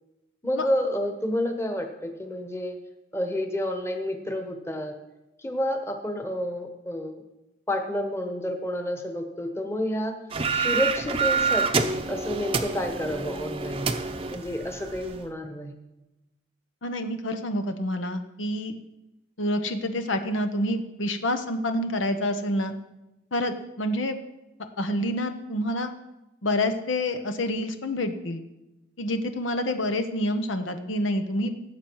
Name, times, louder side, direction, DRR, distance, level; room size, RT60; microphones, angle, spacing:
voice 1, 0.4-2.8 3.1-4.9 5.4-7.2 7.7-10.1 10.5-14.0 14.3-15.7, left 1 dB, 15° left, 5 dB, 1.3 m, -29 dB
sound 1, 10.3-15.2, right 4 dB, 30° right, 0.7 m, -27 dB
voice 2, 16.8-18.7 19.4-22.7 23.3-24.2 24.8-25.9 26.4-28.4 29.0-31.5, left 1 dB, 80° left, 8 dB, 1.0 m, -27 dB
17.5 x 7.8 x 4.7 m, 0.97 s
head